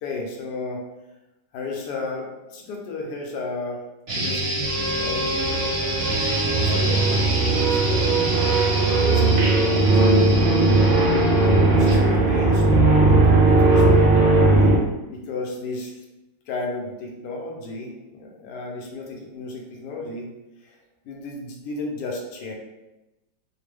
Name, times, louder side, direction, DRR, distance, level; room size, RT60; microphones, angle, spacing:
voice 1, 0.0-0.8 1.5-3.8 4.1-4.5 4.9-6.0 6.6-7.0 7.3-8.2 8.5-10.7 11.4-14.1 15.1-16.0 16.5-20.3 20.6-20.8 21.0-22.5, left 3 dB, 70° left, 0 dB, 1.2 m, -34 dB
sound 1, 4.1-12.1, right 1 dB, 40° right, 1.0 m, -27 dB
sound 2, 4.6-14.8, right 2 dB, 85° right, 1.5 m, -18 dB
3.4 x 2.2 x 3.2 m, 1.0 s
omnidirectional pair, 2.0 m